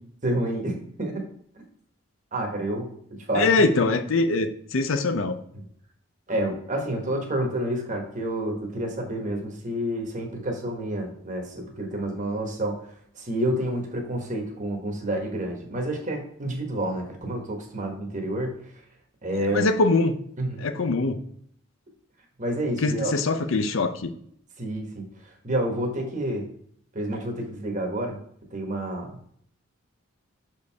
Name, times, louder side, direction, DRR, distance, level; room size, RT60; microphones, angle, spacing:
voice 1, 0.2-1.3 2.3-2.9 3.3-3.7 5.5-5.6 6.3-12.8 13.2-18.5 19.2-19.7 20.4-20.7 22.4-23.1 24.6-25.0 25.4-26.5 26.9-28.2 28.5-29.3, right 1 dB, 35° right, 2 dB, 1.3 m, -29 dB
voice 2, 3.3-5.4 19.5-20.2 20.6-21.2 22.8-24.1, left 3 dB, 65° left, 9 dB, 0.6 m, -23 dB
6.6 x 4.5 x 3.4 m, 0.65 s
head